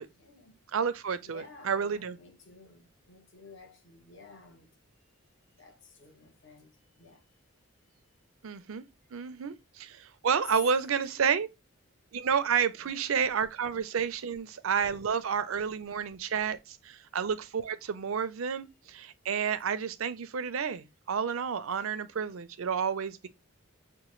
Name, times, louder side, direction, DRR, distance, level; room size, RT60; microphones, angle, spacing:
voice 1, 0.2-0.6 1.2-4.7 5.6-7.2 10.7-11.4 12.8-13.0 21.8-21.9, left 3 dB, 60° left, 1.1 m, -54 dB
voice 2, 0.7-2.2 8.4-8.8 9.1-11.5 12.1-23.3, right 6 dB, 75° right, 0.5 m, -30 dB
6.7 x 2.2 x 3.0 m
head